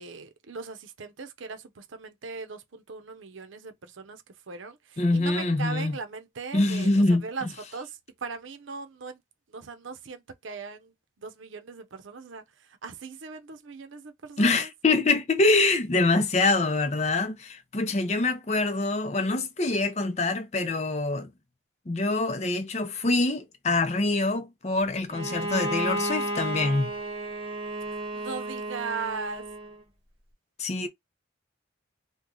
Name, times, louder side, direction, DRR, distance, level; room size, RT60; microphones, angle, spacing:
voice 1, 0.0-9.2 9.5-12.4 12.8-14.7 27.9-29.4 30.8-30.9, right 4 dB, 80° right, 0.7 m, -39 dB
voice 2, 5.0-5.9 6.5-7.5 14.4-21.3 21.9-26.9 30.6-30.9, left 2 dB, 35° left, 0.6 m, -25 dB
Bowed string instrument, 25.1-29.8, right 1 dB, 30° right, 0.8 m, -32 dB
3.1 x 2.3 x 3.7 m
head